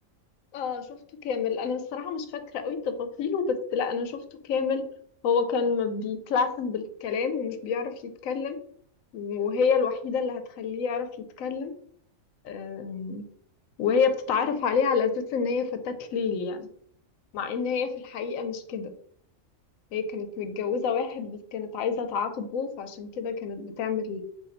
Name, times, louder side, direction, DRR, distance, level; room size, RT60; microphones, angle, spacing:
voice 1, 0.5-0.9 1.2-4.2 4.4-4.8 5.2-8.6 9.1-11.1 11.4-11.7 12.4-13.2 13.8-16.7 17.3-18.9 19.9-24.2, left 5 dB, 85° left, 8 dB, 1.0 m, -28 dB
4.1 x 2.6 x 3.9 m, 0.62 s
omnidirectional pair, 1.4 m